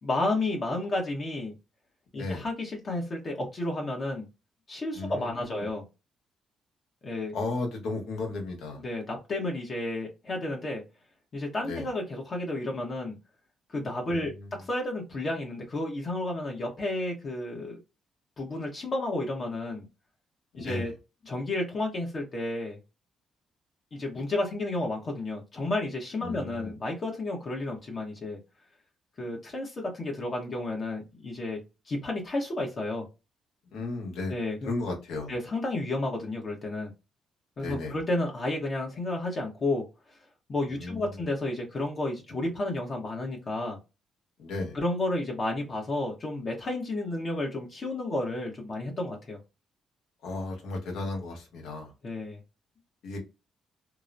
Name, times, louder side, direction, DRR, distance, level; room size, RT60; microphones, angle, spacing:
voice 1, 0.0-1.5 2.1-4.3 4.7-5.8 7.0-7.3 8.8-10.8 11.3-13.2 13.7-14.3 14.6-17.8 18.4-19.9 20.6-20.9 21.2-22.8 23.9-28.4 29.2-31.6 31.9-33.1 34.3-34.7 35.3-36.9 37.6-39.8 40.5-43.8 44.7-49.4 52.0-52.4, left 2 dB, 40° left, 0 dB, 0.9 m, -31 dB
voice 2, 4.9-5.7 7.3-8.8 11.6-11.9 14.1-14.5 20.5-20.9 26.2-26.7 33.7-34.3 34.6-35.3 37.6-38.0 40.7-41.1 44.4-44.8 50.2-51.9 53.0-53.2, left 2 dB, 80° left, 2 dB, 1.1 m, -34 dB
2.9 x 2.0 x 2.5 m, 0.26 s
cardioid pair, 90°, 0 cm